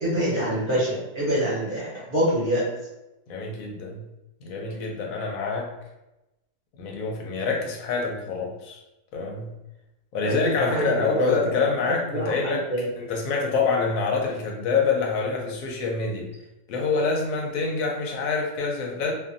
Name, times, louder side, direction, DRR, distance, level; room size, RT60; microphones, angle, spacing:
voice 1, 0.0-2.7 10.2-12.9, equal, 40° right, -8 dB, 1.0 m, -26 dB
voice 2, 3.3-4.1 4.4-5.7 6.8-8.8 9.1-9.5 10.1-12.6 13.0-16.3 16.7-19.1, left 4 dB, 70° left, 0 dB, 0.9 m, -26 dB
2.5 x 2.5 x 2.5 m, 0.96 s
omnidirectional pair, 1.7 m